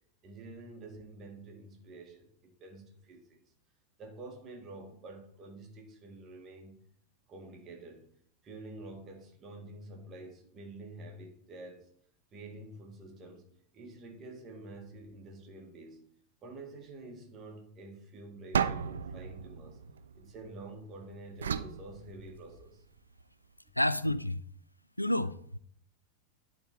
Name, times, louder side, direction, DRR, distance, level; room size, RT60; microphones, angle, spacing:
voice 1, 0.2-3.4 4.0-6.8 7.3-8.0 8.4-11.9 12.3-13.5 13.7-16.0 16.4-19.8 20.1-22.8, right 2 dB, 30° right, 1.8 m, -48 dB
sound 1, 18.5-20.7 21.4-22.8, right 7 dB, 65° right, 0.4 m, -35 dB
voice 2, 23.8-24.4 25.0-25.6, left 1 dB, 85° left, 0.4 m, -29 dB
10.5 x 4.0 x 4.3 m
figure-of-eight pair, 90°, 0 cm